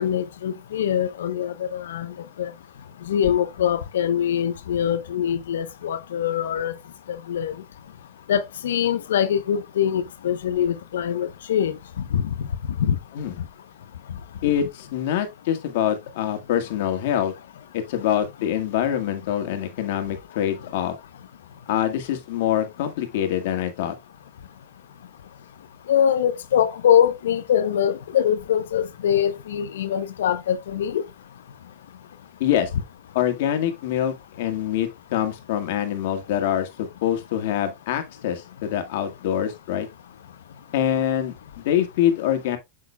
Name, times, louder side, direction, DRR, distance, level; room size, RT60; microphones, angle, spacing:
voice 1, 0.0-2.1 2.4-2.5 3.1-6.7 7.3-7.5 8.3-11.8 12.1-12.3 12.8-13.0 25.9-31.0, left 9 dB, 85° left, 0.7 m, -23 dB
voice 2, 14.4-17.3 17.7-20.9 21.7-24.0 32.4-32.7 33.1-39.9 40.7-42.6, left 10 dB, 65° left, 1.7 m, -25 dB
8.2 x 6.4 x 2.2 m
supercardioid pair, 130°, 0 cm